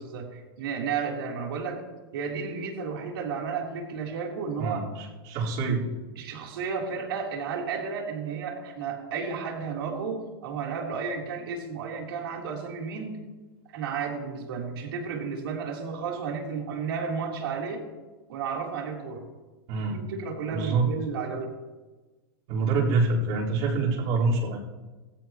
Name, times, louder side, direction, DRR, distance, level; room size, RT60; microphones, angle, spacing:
voice 1, 0.0-1.8 2.1-4.8 6.1-13.2 13.7-17.8 18.3-19.3 19.8-21.5, right 5 dB, 75° right, 0 dB, 3.4 m, -33 dB
voice 2, 4.6-5.9 19.7-20.0 20.5-20.9 22.5-24.6, right 3 dB, 50° right, -5 dB, 4.2 m, -26 dB
18.0 x 15.5 x 3.0 m, 1.2 s
supercardioid pair, 140°, 12 cm